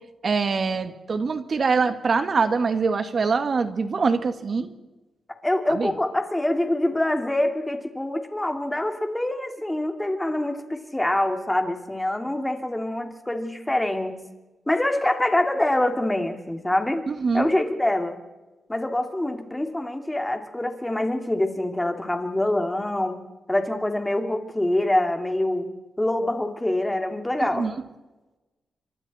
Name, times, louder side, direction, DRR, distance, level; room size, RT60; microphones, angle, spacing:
voice 1, 0.2-4.7 5.7-5.9 17.1-17.5 27.4-27.7, right 4 dB, 45° right, 9 dB, 1.9 m, -24 dB
voice 2, 5.4-14.2 14.7-17.0 17.3-18.2 18.7-23.2 23.5-25.7 26.0-27.7, left 1 dB, 10° left, 5 dB, 2.6 m, -25 dB
29.5 x 25.5 x 4.3 m, 1.1 s
wide cardioid pair, 120°, 0 cm